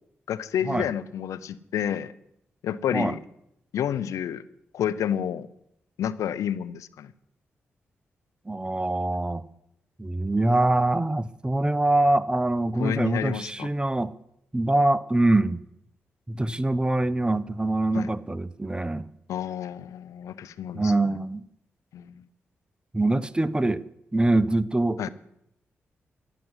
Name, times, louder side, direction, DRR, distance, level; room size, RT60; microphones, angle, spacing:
voice 1, 0.3-2.1 2.6-3.2 3.7-4.4 4.7-5.5 6.0-7.1 12.8-13.7 17.9-18.1 19.3-21.2 21.9-22.3 25.0-25.1, left 9 dB, 80° left, 16 dB, 0.7 m, -30 dB
voice 2, 8.5-9.4 10.0-14.1 14.5-15.6 16.3-19.1 20.7-21.4 22.9-23.8 24.1-25.1, right 2 dB, 15° right, 17 dB, 1.0 m, -24 dB
13.0 x 11.0 x 8.0 m, 0.78 s
supercardioid pair, 40°, 5 cm